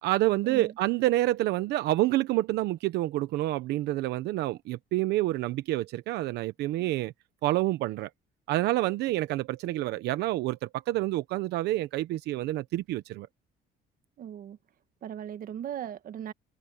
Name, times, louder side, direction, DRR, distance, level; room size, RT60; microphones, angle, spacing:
voice 1, 0.0-7.1 7.4-8.1 8.5-13.3, right 16 dB, 80° right, 0.9 m, -28 dB
voice 2, 14.2-14.6 15.0-16.3, right 10 dB, 55° right, 1.4 m, -38 dB
cardioid pair, 110°, 17 cm